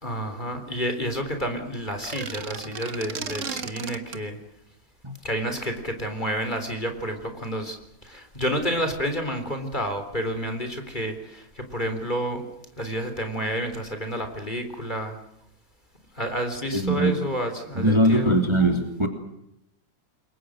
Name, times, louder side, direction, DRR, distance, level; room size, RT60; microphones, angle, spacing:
voice 1, 0.0-4.4 5.2-7.8 8.0-12.4 12.8-15.2 16.2-18.3, equal, 25° left, 7 dB, 3.8 m, -30 dB
sound 1, 1.9-4.2, right 6 dB, 45° right, 1.6 m, -35 dB
voice 2, 16.7-17.2 17.7-19.1, right 1 dB, 15° right, 4 dB, 2.7 m, -21 dB
29.0 x 23.0 x 6.4 m, 0.78 s
omnidirectional pair, 2.0 m